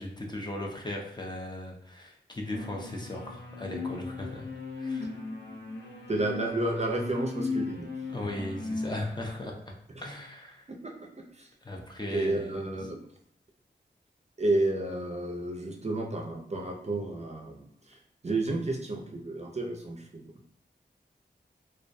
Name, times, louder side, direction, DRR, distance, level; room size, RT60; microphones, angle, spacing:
voice 1, 0.0-4.5 4.8-5.2 8.1-9.7 10.0-10.7 11.6-12.6, left 1 dB, 20° left, 0 dB, 0.5 m, -37 dB
sound 1, 2.5-9.0, left 4 dB, 70° left, 0.6 m, -37 dB
voice 2, 6.1-7.9 10.7-10.9 11.3-11.5 12.1-13.0 14.4-20.5, right 2 dB, 35° right, 1 dB, 0.4 m, -31 dB
2.3 x 2.1 x 2.6 m, 0.70 s
cardioid pair, 45°, 19 cm